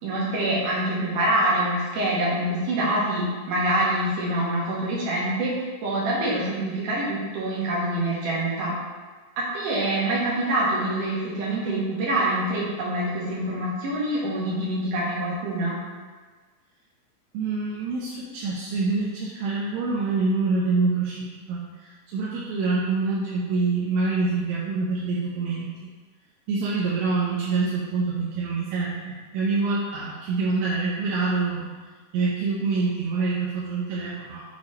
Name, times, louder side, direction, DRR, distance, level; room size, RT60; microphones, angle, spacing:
voice 1, 0.0-8.7 9.4-15.8, right 1 dB, 60° right, -6 dB, 2.9 m, -25 dB
voice 2, 17.3-25.9 26.5-31.7 32.1-34.4, right 3 dB, 75° right, -5 dB, 2.2 m, -26 dB
6.8 x 4.8 x 4.1 m, 1.4 s
omnidirectional pair, 4.8 m